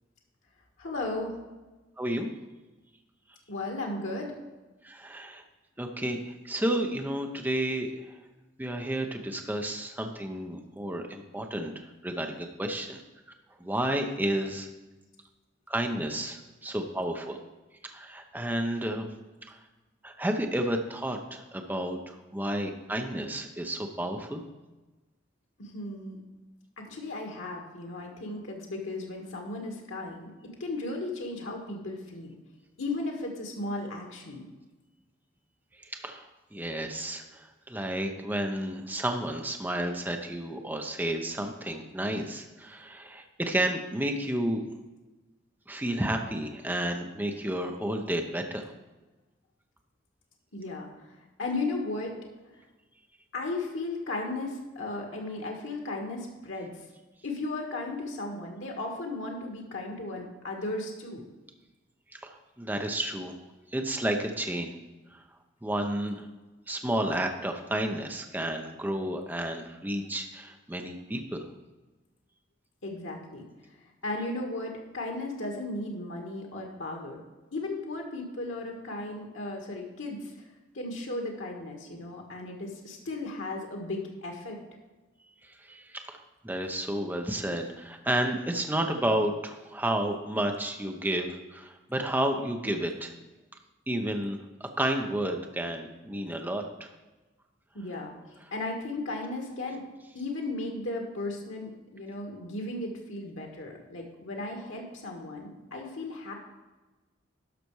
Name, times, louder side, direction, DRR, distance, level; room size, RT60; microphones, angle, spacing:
voice 1, 0.8-1.4 3.5-4.3 25.6-26.2 26.8-30.3 30.6-32.4 32.8-34.4 50.5-51.1 51.4-52.1 53.3-56.7 57.2-61.2 72.8-73.5 74.0-77.2 77.5-80.3 80.7-84.6 97.7-98.1 98.5-99.8 100.1-106.3, left 2 dB, 90° left, 1 dB, 1.7 m, -35 dB
voice 2, 2.0-2.3 4.8-5.4 5.8-8.2 8.6-13.0 13.6-14.7 15.7-17.4 17.8-19.1 19.5-19.6 20.0-24.4 35.8-44.6 45.7-48.7 62.2-63.3 63.7-64.7 65.1-65.2 65.6-66.3 66.7-71.5 85.4-86.2 86.4-93.1 93.9-96.9, right 1 dB, 10° right, 4 dB, 0.7 m, -31 dB
12.0 x 5.9 x 4.7 m, 1.2 s
head